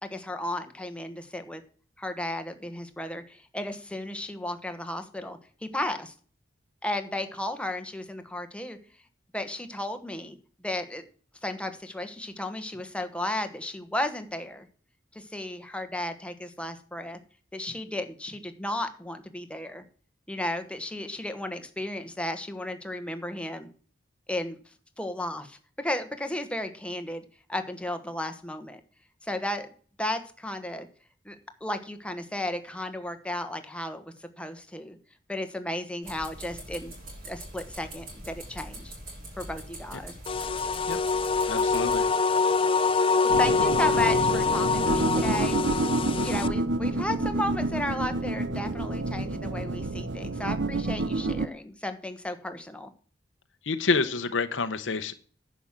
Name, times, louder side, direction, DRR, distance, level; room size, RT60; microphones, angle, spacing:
voice 1, 0.0-1.6 2.0-6.1 6.8-8.8 9.3-10.4 10.6-11.0 11.4-14.7 15.1-17.2 17.5-19.8 20.3-23.7 24.3-24.6 25.0-28.8 29.2-29.7 30.0-30.9 31.2-35.0 35.3-36.9 37.2-38.9 39.4-40.1 43.4-45.6 46.2-52.9, left 1 dB, 5° left, 7 dB, 1.2 m, -34 dB
sound 1, 36.0-42.1, right 1 dB, 50° right, 6.6 m, -43 dB
sound 2, 40.3-46.5, left 4 dB, 30° left, 0.4 m, -25 dB
voice 2, 41.5-42.1 53.6-55.1, left 4 dB, 85° left, 9 dB, 0.9 m, -28 dB
sound 3, 43.3-51.5, right 2 dB, 70° right, 0.8 m, -29 dB
10.5 x 6.1 x 7.4 m, 0.42 s
head